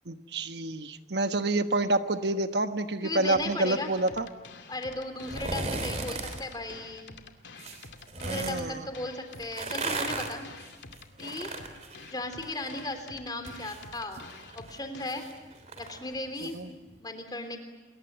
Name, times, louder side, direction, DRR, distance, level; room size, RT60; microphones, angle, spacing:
voice 1, 0.1-4.3 8.3-8.9 16.5-16.7, right 2 dB, 65° right, 8 dB, 1.2 m, -28 dB
voice 2, 3.0-3.9 4.7-7.1 8.1-10.5 11.2-11.5 12.0-14.2 14.5-15.2 15.8-17.6, left 2 dB, 20° left, 7 dB, 3.4 m, -36 dB
sound 1, 3.3-15.3, left 4 dB, 80° left, 2.3 m, -48 dB
sound 2, 5.2-6.4 7.6-8.6 9.4-12.8 13.1-16.6 16.9-17.0, right 3 dB, 35° right, 3.4 m, -36 dB
28.5 x 22.0 x 8.9 m, 1.3 s
head